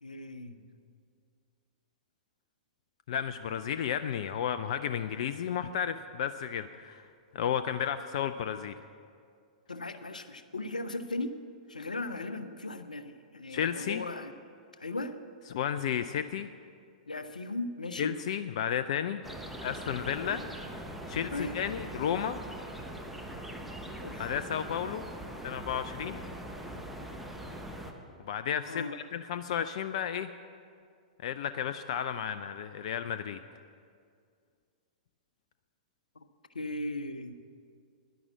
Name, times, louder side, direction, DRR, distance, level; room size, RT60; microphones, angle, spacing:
voice 1, 0.0-0.6 9.7-11.4 11.7-14.3 14.8-15.2 17.1-18.1 20.3-20.4 21.3-21.6 24.0-24.3 28.7-28.9 36.5-37.4, left 2 dB, 80° left, 10 dB, 0.7 m, -37 dB
voice 2, 3.1-7.0 7.3-8.7 13.5-14.0 15.5-16.5 18.0-19.2 19.6-20.4 21.1-22.4 24.2-25.1 25.4-26.2 28.3-30.3 31.2-33.4, left 9 dB, 50° left, 11 dB, 0.4 m, -32 dB
sound 1, 19.2-27.9, right 1 dB, ahead, 1.1 m, -42 dB
11.0 x 10.5 x 7.3 m, 2.2 s
figure-of-eight pair, 105°, 4 cm